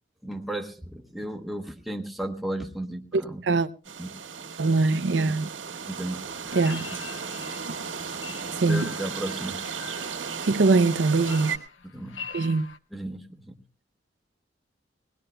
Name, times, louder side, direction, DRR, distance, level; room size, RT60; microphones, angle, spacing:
voice 1, 0.2-3.4 4.0-4.2 5.2-5.4 5.8-6.6 6.8-7.0 8.6-9.6 11.8-12.3 12.9-13.6, right 1 dB, ahead, 0.9 m, -35 dB
sound 1, 3.9-11.6, right 6 dB, 85° right, 1.8 m, -35 dB
voice 2, 4.6-5.5 6.5-6.9 8.5-8.9 10.4-11.5 12.3-12.7, right 3 dB, 70° right, 0.6 m, -22 dB
sound 2, 6.5-12.8, left 6 dB, 85° left, 0.9 m, -43 dB
21.0 x 18.5 x 2.2 m
head